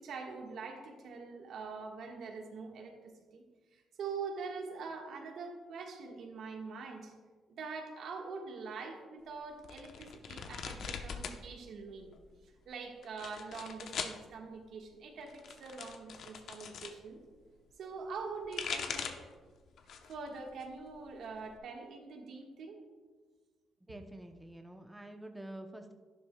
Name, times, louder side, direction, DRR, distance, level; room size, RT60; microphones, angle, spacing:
voice 1, 0.0-3.4 3.7-7.1 7.5-12.1 12.4-17.2 17.8-19.3 20.1-22.8, right 4 dB, 70° right, 2 dB, 1.4 m, -44 dB
sound 1, 9.6-11.4 11.7-12.4 13.0-14.2 15.2-17.0 18.2-19.3 19.8-20.2 20.6-21.6, left 6 dB, 70° left, 0.8 m, -41 dB
voice 2, 23.9-25.9, right 1 dB, 10° right, 4 dB, 0.7 m, -47 dB
11.5 x 10.5 x 2.2 m, 1.5 s
cardioid pair, 90°, 0 cm